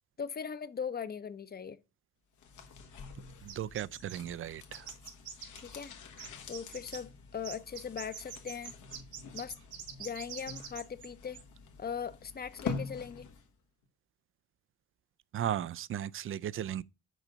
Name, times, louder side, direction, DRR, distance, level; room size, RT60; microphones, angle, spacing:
voice 1, 0.2-1.8 5.6-5.9 6.5-8.7 9.3-9.5 10.0-11.4 11.8-13.3, left 7 dB, 30° left, 0.7 m, -39 dB
sound 1, 2.3-13.6 13.8-13.9, left 5 dB, 75° left, 1.4 m, -46 dB
voice 2, 3.4-4.9 15.3-16.8, right 10 dB, 45° right, 0.4 m, -36 dB
sound 2, 3.5-4.3 4.7-5.9 6.2-7.0 7.4-11.1 11.3-11.4, right 8 dB, 70° right, 2.0 m, -45 dB
6.2 x 4.9 x 6.6 m
cardioid pair, 90°, 30 cm